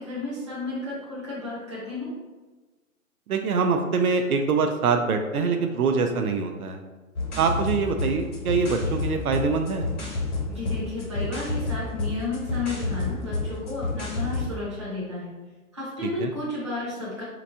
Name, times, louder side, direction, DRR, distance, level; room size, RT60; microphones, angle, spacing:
voice 1, 0.0-2.1 10.5-15.3 15.7-17.2, left 2 dB, 20° right, -9 dB, 0.7 m, -32 dB
voice 2, 3.3-6.8 7.4-9.8 16.0-16.3, right 5 dB, 80° right, 5 dB, 0.6 m, -24 dB
sound 1, 7.2-14.5, left 3 dB, 55° left, 1.1 m, -30 dB
3.4 x 2.9 x 2.6 m, 1.3 s
hypercardioid pair, 170°, 44 cm